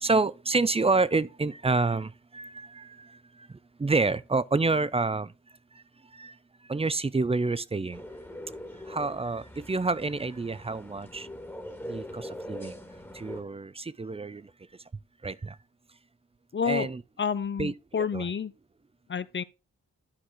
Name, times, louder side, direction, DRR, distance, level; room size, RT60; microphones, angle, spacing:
voice 1, 0.0-2.8 3.8-5.3 6.2-6.3 6.7-8.0 8.9-11.3 11.9-12.7 13.2-14.4 15.2-15.5 16.7-17.0 17.6-18.2, right 3 dB, 20° right, 0.4 m, -28 dB
sound 1, 7.9-13.4, left 1 dB, 5° left, 1.5 m, -42 dB
voice 2, 16.5-16.9 17.2-18.5 19.1-19.4, left 6 dB, 40° left, 0.6 m, -29 dB
11.5 x 4.8 x 3.7 m
wide cardioid pair, 80°, 31 cm